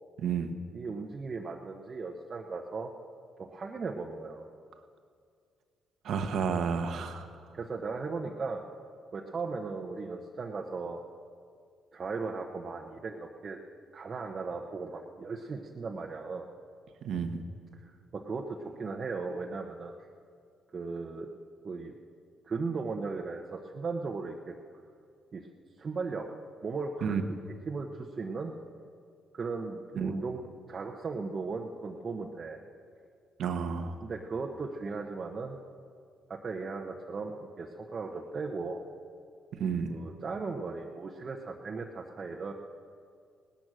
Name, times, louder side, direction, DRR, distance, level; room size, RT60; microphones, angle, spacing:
voice 1, 0.2-0.5 6.0-7.3 17.0-17.4 27.0-27.2 30.0-30.1 33.4-33.9 39.6-39.9, right 6 dB, 70° right, 7 dB, 1.1 m, -31 dB
voice 2, 0.7-2.9 3.4-4.5 7.5-8.6 9.1-11.0 11.9-13.6 13.9-16.5 17.8-20.0 20.7-21.3 21.6-21.9 22.4-24.5 25.3-25.4 25.8-26.3 26.6-27.2 27.7-28.5 29.3-30.4 30.7-32.6 34.0-35.6 36.3-38.8 39.9-42.5, right 4 dB, 40° right, 0 dB, 1.0 m, -37 dB
18.0 x 11.0 x 6.3 m, 2.2 s
cardioid pair, 90°, 0 cm